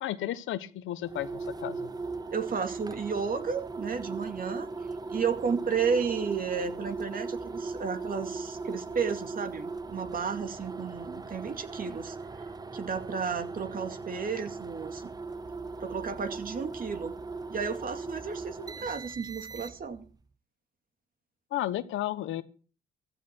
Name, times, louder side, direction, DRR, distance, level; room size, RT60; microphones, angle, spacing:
voice 1, 0.0-1.9 21.5-22.4, left 13 dB, 85° left, 13 dB, 1.2 m, -33 dB
sound 1, 1.0-20.0, right 3 dB, 20° right, 0.6 m, -38 dB
voice 2, 2.3-4.7 5.1-12.2 12.7-15.1 15.8-17.1 17.5-20.1, right 6 dB, 45° right, 7 dB, 2.3 m, -33 dB
15.5 x 13.5 x 4.6 m, 0.39 s
cardioid pair, 90°, 20 cm